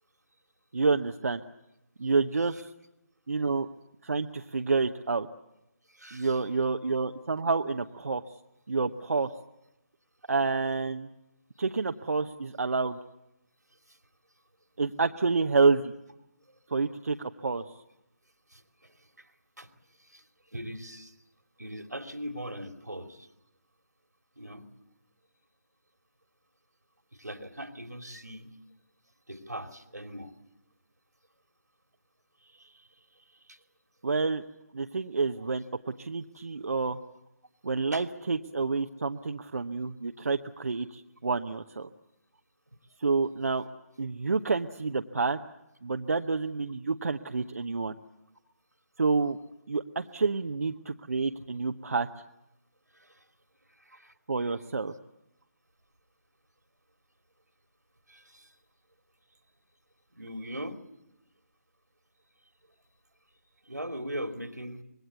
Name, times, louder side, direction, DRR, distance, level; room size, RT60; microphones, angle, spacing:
voice 1, 0.7-1.4 2.0-2.7 3.3-3.7 4.0-5.3 6.1-8.2 8.7-9.3 10.3-11.1 11.6-13.0 14.8-15.9 16.7-17.6 34.0-34.4 34.7-37.0 37.6-41.9 43.0-43.7 44.0-45.4 45.8-47.9 49.0-49.4 49.7-52.1 54.3-54.9, right 4 dB, 60° right, 6 dB, 1.0 m, -28 dB
voice 2, 5.9-6.4 13.9-14.0 18.5-19.3 19.6-19.7 20.0-21.1 21.6-23.3 24.4-24.7 27.1-28.5 29.3-30.3 32.4-32.9 33.1-33.6 37.9-38.0 52.9-53.3 53.7-54.1 58.1-58.6 60.1-60.8 63.6-64.8, equal, 85° right, 7 dB, 2.7 m, -41 dB
25.5 x 21.5 x 8.2 m, 0.89 s
figure-of-eight pair, 150°, 9 cm